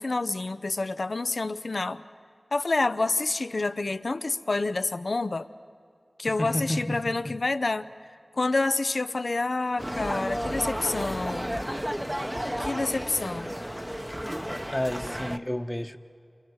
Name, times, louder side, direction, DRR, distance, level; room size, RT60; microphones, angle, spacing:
voice 1, 0.0-2.0 2.5-5.5 6.2-7.9 8.3-11.6 12.6-13.5, left 3 dB, 70° left, 12 dB, 0.7 m, -28 dB
voice 2, 6.4-7.4 14.7-16.0, left 1 dB, 20° left, 8 dB, 1.1 m, -31 dB
sound 1, 9.8-15.4, equal, 10° right, 0.9 m, -32 dB
30.0 x 29.0 x 4.8 m, 2.4 s
wide cardioid pair, 40°, 0 cm